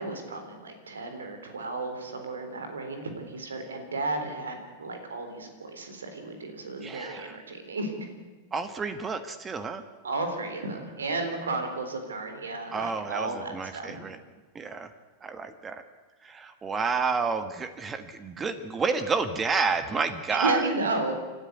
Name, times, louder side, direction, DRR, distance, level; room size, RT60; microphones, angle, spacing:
voice 1, 0.0-8.1 10.0-14.0 20.3-21.1, right 2 dB, 70° right, 6 dB, 3.8 m, -33 dB
voice 2, 6.8-7.4 8.5-9.8 12.7-14.2 14.5-14.9 15.2-15.8 16.2-20.7, right 4 dB, 20° right, 11 dB, 1.4 m, -30 dB
29.0 x 13.0 x 8.2 m, 1.3 s
figure-of-eight pair, 90°, 0 cm